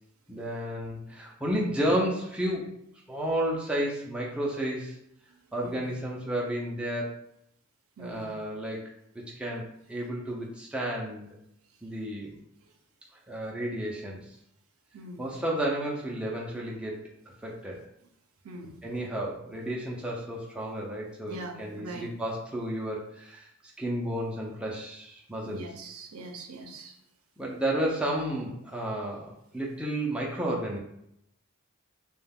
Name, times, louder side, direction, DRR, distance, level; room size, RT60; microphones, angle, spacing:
voice 1, 0.3-2.8 3.1-5.0 5.5-7.2 8.0-8.9 9.1-11.3 11.8-12.3 13.3-14.4 15.2-17.0 17.4-17.8 18.8-23.5 23.8-25.7 27.4-30.8, right 1 dB, 5° right, -3 dB, 0.3 m, -32 dB
voice 2, 8.0-8.3 14.9-15.2 18.4-18.8 21.3-22.1 25.4-26.9, right 2 dB, 75° right, 3 dB, 0.5 m, -42 dB
2.2 x 2.1 x 3.3 m, 0.77 s
head